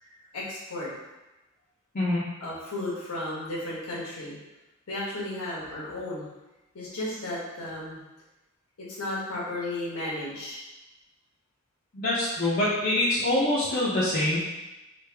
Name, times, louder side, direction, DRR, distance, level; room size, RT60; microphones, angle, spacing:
voice 1, 0.0-0.9 2.4-4.4 4.9-6.3 6.7-8.0 8.8-10.6, left 1 dB, 85° left, -6 dB, 1.2 m, -34 dB
voice 2, 11.9-14.4, left 1 dB, 40° left, -8 dB, 0.6 m, -25 dB
3.2 x 2.5 x 3.3 m, 1.0 s
head